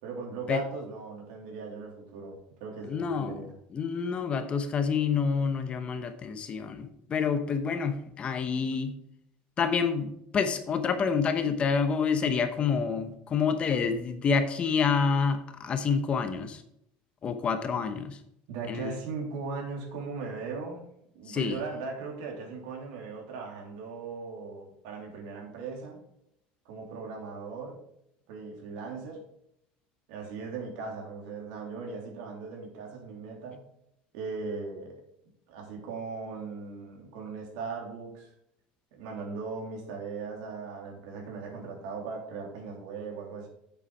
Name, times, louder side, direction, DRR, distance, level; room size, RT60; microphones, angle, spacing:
voice 1, 0.0-3.5 18.5-20.8 21.1-26.0 26.6-27.8 28.3-29.2 30.1-33.6 34.1-35.0 35.5-38.3 38.9-43.5, right 4 dB, 80° right, 0 dB, 3.1 m, -38 dB
voice 2, 2.9-3.4 3.7-8.9 9.6-16.6 17.2-18.2 18.7-19.0 21.3-21.6, left 6 dB, 30° left, 9 dB, 0.9 m, -28 dB
8.0 x 7.2 x 4.8 m, 0.76 s
cardioid pair, 145°, 4 cm